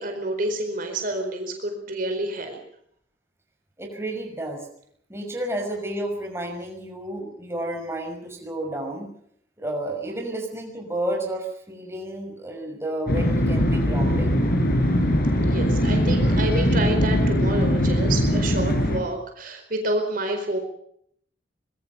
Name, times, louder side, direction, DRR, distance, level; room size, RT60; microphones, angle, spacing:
voice 1, 0.0-2.6 15.4-20.6, right 2 dB, 50° right, 5 dB, 4.6 m, -28 dB
voice 2, 3.8-4.6 5.1-9.1 9.6-14.4, right 1 dB, 15° right, 2 dB, 6.0 m, -31 dB
sound 1, 13.1-19.0, equal, 55° left, 5.9 m, -21 dB
24.5 x 22.0 x 5.5 m, 0.67 s
head